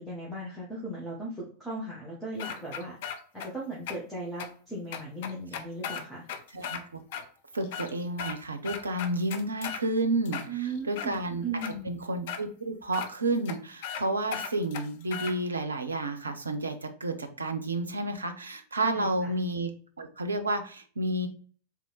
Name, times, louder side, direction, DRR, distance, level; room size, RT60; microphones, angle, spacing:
voice 1, 0.0-3.0 3.3-6.3 10.5-11.9 18.9-19.3, right 2 dB, ahead, -6 dB, 1.2 m, -37 dB
sound 1, 2.4-3.5 3.9-4.0 4.4-4.5 4.9-6.8 7.1-7.2 7.6-8.4 8.6-9.8 10.3-11.1 11.6-11.7 12.3-12.4 12.9-13.1 13.5-13.6 13.8-14.0 14.3-15.3, left 8 dB, 55° left, 0.5 m, -36 dB
voice 2, 6.5-7.0 7.5-11.4 11.8-19.7 20.0-21.3, right 2 dB, 75° right, 7 dB, 0.5 m, -31 dB
3.4 x 2.8 x 3.9 m, 0.44 s
figure-of-eight pair, 90°, 0 cm